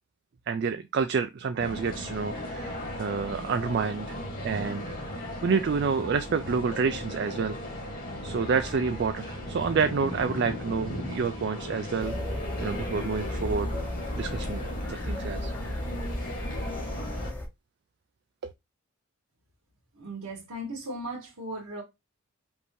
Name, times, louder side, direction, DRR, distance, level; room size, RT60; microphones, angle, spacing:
voice 1, 0.5-4.8 5.4-7.6 8.2-12.2 12.6-13.8 14.2-14.6 14.9-15.6 18.4-18.5, right 5 dB, 50° right, 0.3 m, -28 dB
sound 1, 1.6-17.3, left 1 dB, 40° left, 1.6 m, -37 dB
sound 2, 12.0-17.5, left 1 dB, 10° left, 0.7 m, -34 dB
voice 2, 19.9-21.8, right 1 dB, 85° right, 1.6 m, -37 dB
5.3 x 2.8 x 3.0 m
head